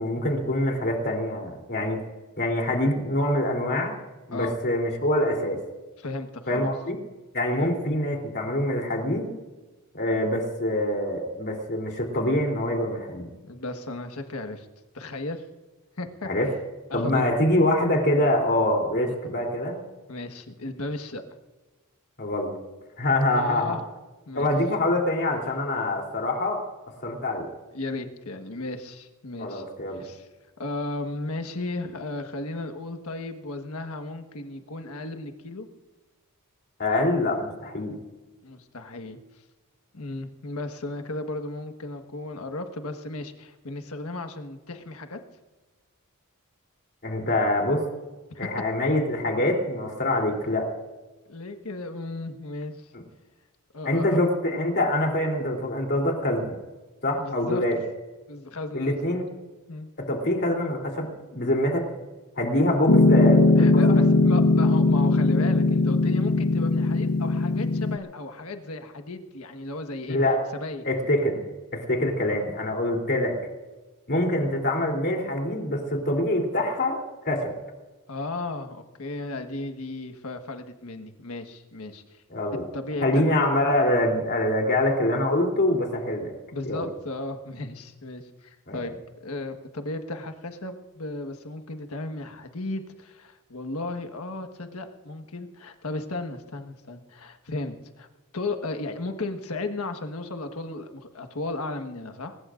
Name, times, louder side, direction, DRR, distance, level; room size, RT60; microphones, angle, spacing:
voice 1, 0.0-2.0 2.4-3.9 4.3-5.6 6.5-7.0 7.3-9.3 9.9-13.3 16.2-16.5 16.9-19.8 22.2-22.5 23.0-23.8 24.3-26.6 27.0-27.5 29.4-30.0 36.8-37.9 47.0-47.8 48.4-50.7 53.8-56.6 57.0-57.8 58.7-59.3 60.0-61.9 62.4-64.0 70.1-70.5 70.8-71.4 71.7-73.4 74.1-77.0 77.2-77.5 82.3-82.7 83.0-86.3 86.6-86.9 88.7-88.8, left 1 dB, 50° left, 1 dB, 3.3 m, -25 dB
voice 2, 6.0-6.7 7.6-7.7 13.5-14.7 14.9-15.4 16.0-16.3 16.9-17.3 19.1-19.2 20.1-21.2 23.3-23.8 24.3-24.5 27.7-29.6 29.9-30.3 30.6-35.7 38.4-39.2 39.9-45.2 48.3-48.5 51.3-52.9 53.7-54.2 57.2-57.6 58.3-59.2 59.7-59.9 63.6-70.2 70.5-70.8 78.1-82.2 82.7-83.3 86.5-88.9 89.2-98.1 98.3-102.4, left 2 dB, 70° left, 7 dB, 1.5 m, -35 dB
Piano, 62.9-68.0, left 2 dB, 85° left, 1.0 m, -19 dB
23.0 x 20.0 x 2.6 m, 1.2 s
head